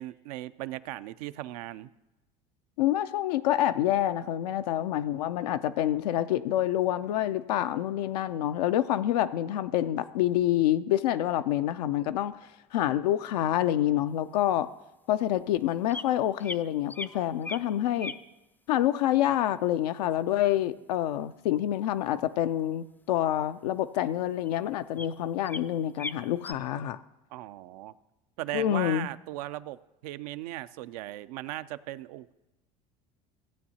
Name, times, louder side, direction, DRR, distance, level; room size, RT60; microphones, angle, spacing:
voice 1, 0.0-1.9 27.3-27.9 28.4-32.3, right 15 dB, 75° right, 14 dB, 0.5 m, -38 dB
voice 2, 2.8-14.7 15.1-18.1 18.7-27.0 28.5-29.1, left 12 dB, 85° left, 10 dB, 0.4 m, -27 dB
sound 1, 14.4-14.5 15.9-16.0 16.4-16.6 16.9-17.6 18.0-18.2 23.2-23.4 23.7-23.8 24.5-24.6 25.0-25.1 25.4-25.6 26.0-26.5, left 3 dB, 10° left, 0.4 m, -38 dB
15.5 x 8.4 x 2.8 m, 0.99 s
hypercardioid pair, 85°, 20 cm